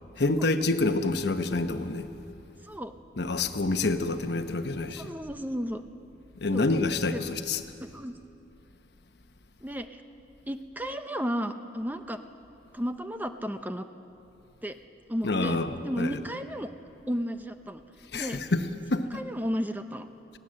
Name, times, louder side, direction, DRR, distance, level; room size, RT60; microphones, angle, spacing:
voice 1, 0.2-2.1 3.2-5.1 6.4-7.6 15.2-16.2 18.1-18.7 18.9-19.1, left 2 dB, 65° left, 8 dB, 1.0 m, -27 dB
voice 2, 2.6-2.9 5.0-5.8 6.5-6.7 7.1-7.2 7.8-8.1 9.6-10.0 10.4-12.2 12.7-13.9 14.6-14.8 15.1-15.6 15.8-16.7 17.1-17.8 18.1-18.4 19.1-20.1, equal, 10° right, 8 dB, 0.8 m, -33 dB
20.5 x 17.0 x 7.7 m, 2.7 s
head